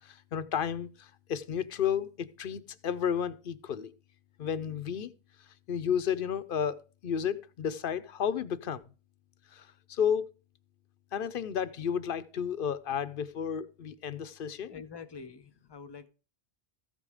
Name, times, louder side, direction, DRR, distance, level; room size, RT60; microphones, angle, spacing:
voice 1, 0.0-3.9 4.4-5.1 5.7-8.8 9.5-10.3 11.1-14.8, left 8 dB, 55° left, 0.8 m, -32 dB
voice 2, 14.7-16.1, left 5 dB, 25° left, 0.7 m, -46 dB
14.0 x 5.3 x 4.8 m
omnidirectional pair, 1.2 m